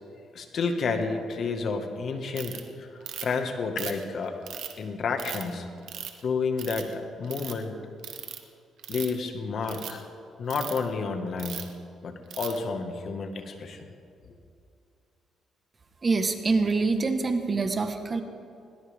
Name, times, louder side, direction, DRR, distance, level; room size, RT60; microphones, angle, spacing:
voice 1, 0.1-4.4 4.8-5.7 6.2-7.8 8.9-10.1 10.4-11.6 12.0-13.9, left 4 dB, 55° left, 5 dB, 1.7 m, -30 dB
Ratchet pawl, 2.4-2.6 3.1-3.4 3.8-4.7 5.2-5.4 5.9-6.2 6.6-6.9 7.2-7.5 8.0-8.4 8.8-9.2 9.6-9.9 10.5-10.8 11.4-11.7 12.3-12.6, right 10 dB, 75° right, 1.4 m, -37 dB
voice 2, 16.0-18.2, right 3 dB, 35° right, 7 dB, 1.4 m, -25 dB
20.5 x 19.0 x 3.6 m, 2.5 s
cardioid pair, 85°, 0 cm